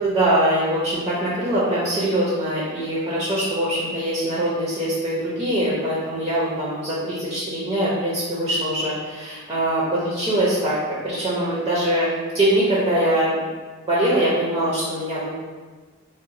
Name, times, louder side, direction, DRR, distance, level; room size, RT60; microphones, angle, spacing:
voice 1, 0.0-12.1 12.3-13.3 13.9-15.3, right 1 dB, 20° right, -7 dB, 0.6 m, -22 dB
4.0 x 2.1 x 2.6 m, 1.4 s
head